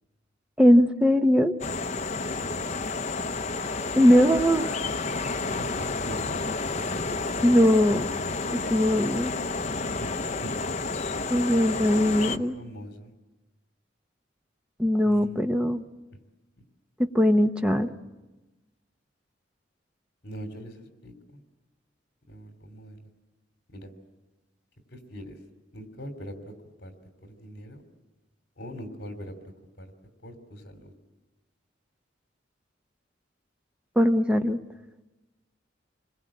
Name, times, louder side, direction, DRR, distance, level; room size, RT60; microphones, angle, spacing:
voice 1, 0.6-1.6 3.9-4.8 7.4-8.1 8.5-9.3 11.3-12.6 14.8-15.8 17.1-17.9 34.0-34.6, equal, 5° right, 7 dB, 0.9 m, -20 dB
sound 1, 1.6-12.4, left 3 dB, 35° left, 0.8 m, -30 dB
voice 2, 2.2-2.9 5.4-6.4 6.7-7.5 10.0-10.5 11.9-13.1 15.0-15.6 20.2-21.4 22.3-23.1 23.7-23.9 24.9-25.4 25.7-26.9 27.2-27.8 28.6-29.3 29.8-29.9 30.2-30.9, equal, 60° left, 6 dB, 3.2 m, -42 dB
27.5 x 21.5 x 8.7 m, 1.1 s
head